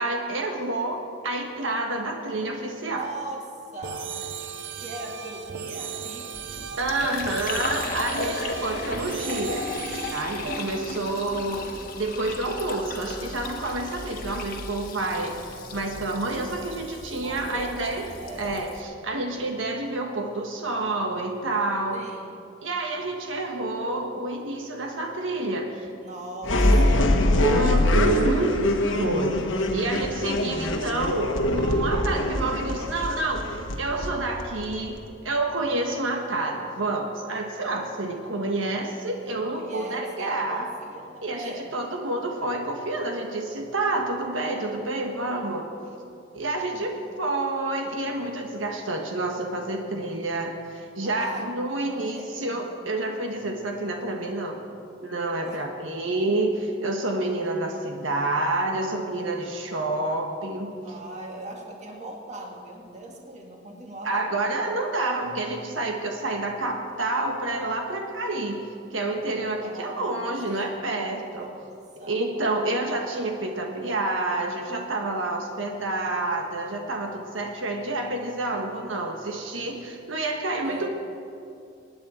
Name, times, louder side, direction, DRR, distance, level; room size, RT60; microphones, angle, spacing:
voice 1, 0.0-3.1 6.8-9.7 10.1-11.7 12.0-18.0 18.4-22.0 22.6-25.9 27.4-29.5 29.7-40.7 41.2-45.7 46.3-46.9 47.2-54.7 55.0-60.7 64.0-68.6 68.9-71.5 72.1-80.9, right 2 dB, 85° right, 2 dB, 1.4 m, -28 dB
voice 2, 2.9-4.2 4.8-6.3 7.3-8.1 10.9-11.0 17.2-18.6 21.9-22.3 26.0-27.2 39.2-41.7 46.7-46.9 51.0-52.7 55.5-55.6 60.8-64.5 69.6-70.9 71.3-71.7 72.0-72.2 80.6-80.9, right 2 dB, 35° right, 0 dB, 2.0 m, -40 dB
sound 1, 3.8-10.7, right 7 dB, 65° right, 0.7 m, -36 dB
Fill (with liquid), 6.3-18.8, left 3 dB, 45° left, 1.4 m, -35 dB
sound 2, 26.4-35.1, left 1 dB, 85° left, 1.3 m, -23 dB
24.5 x 9.5 x 4.4 m, 2.5 s
head